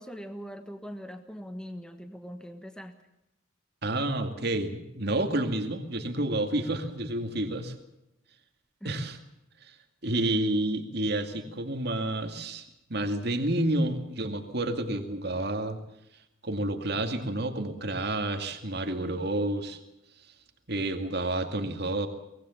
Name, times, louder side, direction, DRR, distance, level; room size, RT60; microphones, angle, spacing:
voice 1, 0.0-2.9 8.8-9.0, equal, 5° left, 7 dB, 1.5 m, -41 dB
voice 2, 3.8-7.8 8.8-9.2 9.6-9.7 10.0-15.8 16.4-19.8 20.7-22.1, right 1 dB, 55° right, 6 dB, 2.3 m, -29 dB
24.5 x 19.0 x 7.2 m, 0.85 s
head